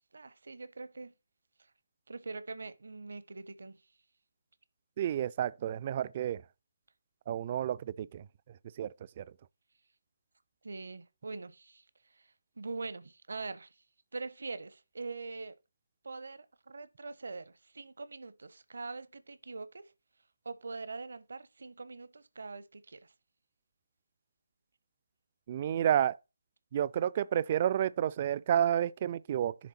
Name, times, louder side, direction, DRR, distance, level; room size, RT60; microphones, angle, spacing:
voice 1, 0.1-1.1 2.1-3.8 10.6-11.8 12.1-12.3 12.6-13.7 14.1-15.5 16.0-19.9 20.4-23.1, right 3 dB, 60° right, 0.7 m, -43 dB
voice 2, 5.0-6.4 7.3-8.2 8.8-8.9 9.2-9.3 25.5-26.2 26.7-29.5, right 10 dB, 35° right, 0.3 m, -30 dB
10.5 x 3.6 x 4.2 m
figure-of-eight pair, 145°, 0 cm